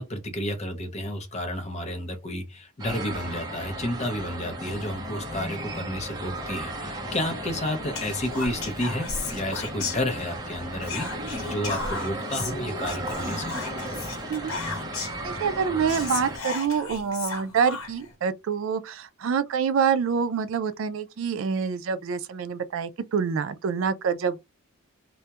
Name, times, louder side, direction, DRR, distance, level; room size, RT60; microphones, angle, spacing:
voice 1, 0.0-13.5, left 1 dB, 30° left, 0.5 m, -31 dB
sound 1, 2.8-16.4, right 1 dB, 20° right, 0.6 m, -35 dB
Whispering, 7.9-10.5 10.8-15.3 15.6-15.7 15.9-18.1, left 4 dB, 85° left, 0.9 m, -35 dB
voice 2, 15.2-24.4, right 6 dB, 65° right, 0.3 m, -26 dB
2.2 x 2.1 x 2.8 m
head